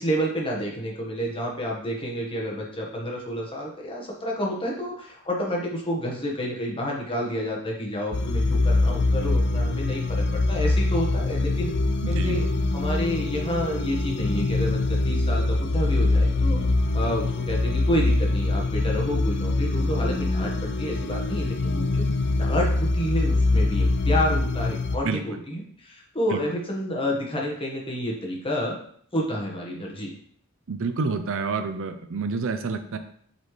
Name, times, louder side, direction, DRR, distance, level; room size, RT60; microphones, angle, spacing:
voice 1, 0.0-11.7 12.1-12.4 12.7-16.6 16.9-28.8 29.1-30.1, equal, 25° left, -2 dB, 1.3 m, -29 dB
sound 1, 8.1-25.0, left 2 dB, 50° left, 0.5 m, -24 dB
voice 2, 30.7-33.0, right 4 dB, 60° right, 9 dB, 0.5 m, -28 dB
8.1 x 4.2 x 3.2 m, 0.62 s
head